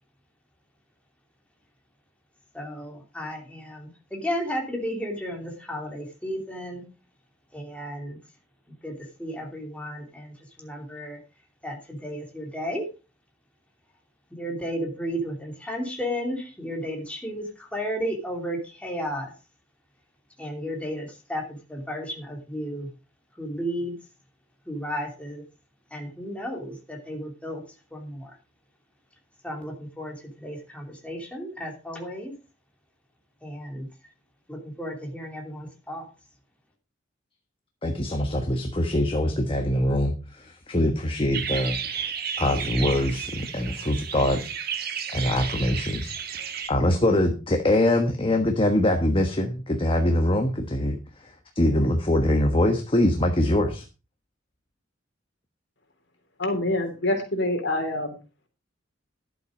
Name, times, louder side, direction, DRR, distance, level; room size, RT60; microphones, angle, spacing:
voice 1, 2.5-6.8 7.5-8.2 8.8-11.2 11.6-12.8 14.3-19.3 20.4-22.9 23.3-24.0 24.6-25.4 25.9-27.6 27.9-28.4 29.4-32.3 33.4-33.9 34.5-36.1, equal, 5° left, 1 dB, 2.9 m, -33 dB
voice 2, 37.8-42.1 42.4-44.4 45.1-46.2 46.7-53.8, left 1 dB, 30° left, 4 dB, 1.3 m, -23 dB
sound 1, 41.3-46.7, right 7 dB, 55° right, 1.6 m, -33 dB
voice 3, 56.4-58.2, left 1 dB, 65° left, 4 dB, 3.5 m, -26 dB
11.5 x 7.9 x 5.0 m, 0.32 s
head